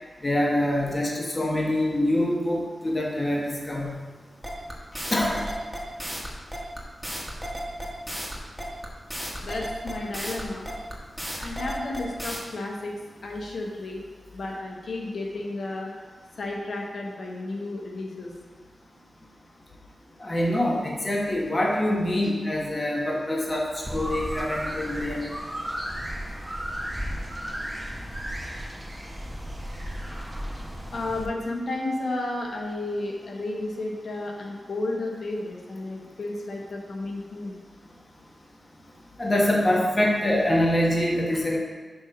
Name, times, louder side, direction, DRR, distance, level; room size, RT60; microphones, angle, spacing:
voice 1, 0.2-4.0 5.1-5.4 20.2-25.2 39.2-41.6, left 1 dB, 30° left, -2 dB, 1.3 m, -25 dB
sound 1, 4.4-12.4, equal, ahead, 1.3 m, -34 dB
voice 2, 9.4-10.7 11.4-12.9 13.2-14.0 14.3-15.9 16.4-18.3 30.9-37.6, left 2 dB, 70° left, 0 dB, 1.1 m, -32 dB
sound 2, 23.9-31.3, equal, 20° right, 0.9 m, -34 dB
6.1 x 3.3 x 5.6 m, 1.4 s
cardioid pair, 55°, 0 cm